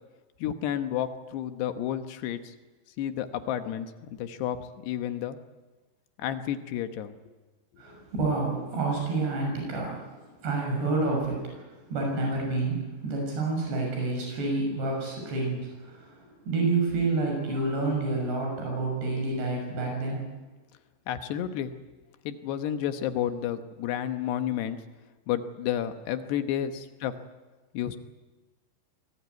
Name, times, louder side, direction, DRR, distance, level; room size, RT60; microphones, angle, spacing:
voice 1, 0.4-2.5 3.0-5.4 6.2-7.1 21.1-21.7 22.2-24.8 25.3-27.1 27.7-28.0, left 10 dB, 80° left, 8 dB, 3.3 m, -31 dB
voice 2, 7.8-20.3, right 3 dB, 75° right, 0 dB, 8.7 m, -29 dB
24.0 x 18.5 x 9.5 m, 1.2 s
omnidirectional pair, 4.8 m